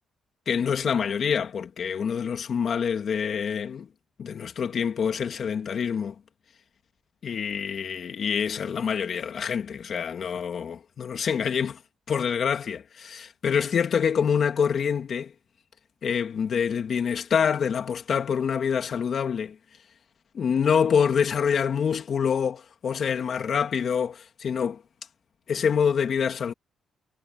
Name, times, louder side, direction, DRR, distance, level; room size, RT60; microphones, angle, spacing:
voice 1, 0.5-3.9 4.2-6.1 7.2-11.8 12.1-15.3 16.0-19.6 20.3-24.8 25.5-26.5, left 7 dB, 55° left, 2.5 m, -26 dB
cardioid pair, 90°, 0 cm